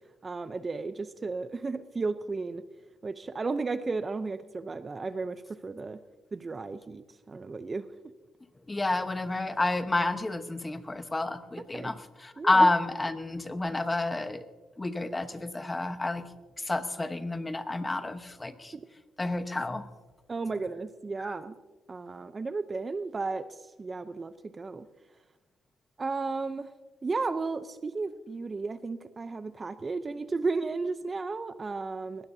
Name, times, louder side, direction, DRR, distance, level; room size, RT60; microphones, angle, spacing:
voice 1, 0.2-2.6 3.0-6.0 6.3-7.0 7.3-7.9 11.7-11.9 12.4-12.7 18.7-18.8 20.3-21.6 21.9-23.4 23.8-24.9 26.0-26.7 27.0-32.3, right 3 dB, 30° right, 11 dB, 0.6 m, -34 dB
voice 2, 8.7-14.5 14.8-16.2 16.6-18.7 19.2-19.8, left 2 dB, 15° left, 9 dB, 1.1 m, -29 dB
21.0 x 17.0 x 2.7 m, 1.2 s
cardioid pair, 105°, 0 cm